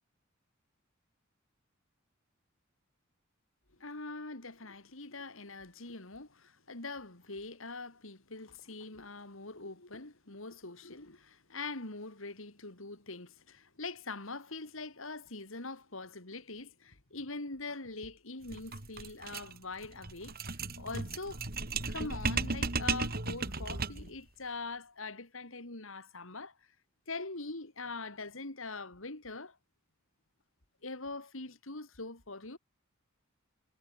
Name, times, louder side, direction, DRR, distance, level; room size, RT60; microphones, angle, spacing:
voice 1, 3.8-21.4 21.9-26.5 27.1-29.6 30.8-32.6, left 3 dB, 70° left, 3.5 m, -43 dB
sound 1, 18.4-24.2, right 3 dB, 50° right, 3.2 m, -35 dB
head